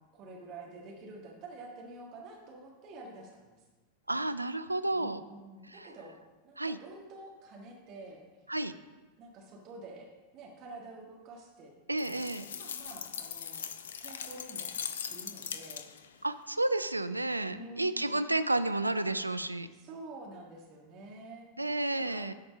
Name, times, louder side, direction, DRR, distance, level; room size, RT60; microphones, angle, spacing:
voice 1, 0.0-3.6 4.9-6.1 6.4-8.3 9.2-10.1 10.3-11.7 12.0-13.6 14.0-14.7 15.1-15.8 17.5-18.2 19.7-21.5 21.9-22.3, right 2 dB, 40° right, -1 dB, 1.5 m, -48 dB
voice 2, 4.1-5.2 5.7-5.9 6.6-6.8 8.5-8.7 11.9-12.4 16.2-19.7 21.6-22.3, right 2 dB, 85° right, 12 dB, 0.4 m, -31 dB
sound 1, 12.0-16.2, left 7 dB, 65° left, 0.5 m, -40 dB
12.5 x 4.4 x 5.0 m, 1.3 s
figure-of-eight pair, 90°, 0 cm